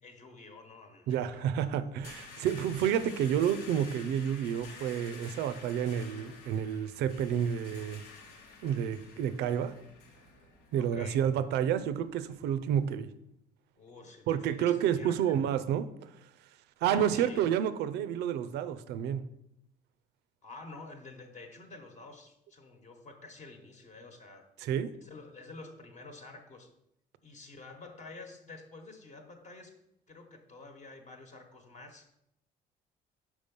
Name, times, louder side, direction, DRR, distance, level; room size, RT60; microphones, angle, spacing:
voice 1, 0.0-1.8 10.8-11.2 13.8-15.3 16.8-17.6 20.4-24.5 25.0-26.7 27.2-29.7 30.1-32.1, left 3 dB, 45° left, 3 dB, 1.1 m, -49 dB
voice 2, 1.1-8.0 8.6-9.8 10.7-13.1 14.3-16.1 16.8-19.2 24.6-24.9, right 9 dB, 80° right, 13 dB, 0.5 m, -30 dB
sound 1, 1.2-12.9, left 4 dB, 90° left, 1.1 m, -51 dB
5.4 x 4.8 x 5.3 m, 0.79 s
cardioid pair, 110°, 17 cm